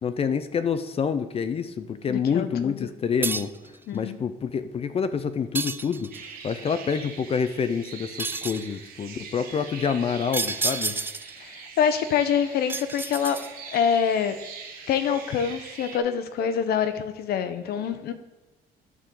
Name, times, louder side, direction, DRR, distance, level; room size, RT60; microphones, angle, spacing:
voice 1, 0.0-3.5 3.9-6.1 6.4-11.0, left 6 dB, 35° left, 12 dB, 0.6 m, -27 dB
voice 2, 2.1-2.9 3.9-4.2 11.4-13.4 13.7-14.4 14.9-18.1, left 7 dB, 65° left, 10 dB, 0.9 m, -25 dB
sound 1, 3.2-3.7 5.5-6.3 8.2-8.7 10.3-11.4 12.7-13.7, right 3 dB, 15° right, 0.4 m, -30 dB
sound 2, 6.1-16.0, right 5 dB, 65° right, 1.7 m, -42 dB
11.0 x 3.8 x 6.8 m, 1.1 s
cardioid pair, 110°, 17 cm